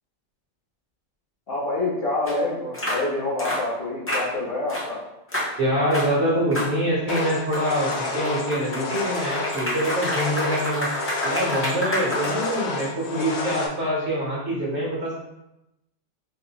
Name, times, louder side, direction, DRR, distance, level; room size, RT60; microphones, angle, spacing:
voice 1, 1.5-5.0, left 2 dB, 50° left, -8 dB, 1.6 m, -27 dB
sound 1, 2.3-2.4 2.7-3.0 3.4-3.6 4.1-4.3 4.7-4.9 5.3-5.5 5.9-6.1 6.5-6.7 7.1-12.8, equal, 20° left, 0.4 m, -29 dB
voice 2, 5.6-10.9 11.2-15.1, equal, 60° right, -5 dB, 1.6 m, -25 dB
sound 2, 7.1-13.7, left 3 dB, 65° left, 0.8 m, -30 dB
4.5 x 2.6 x 2.9 m, 0.90 s
omnidirectional pair, 1.3 m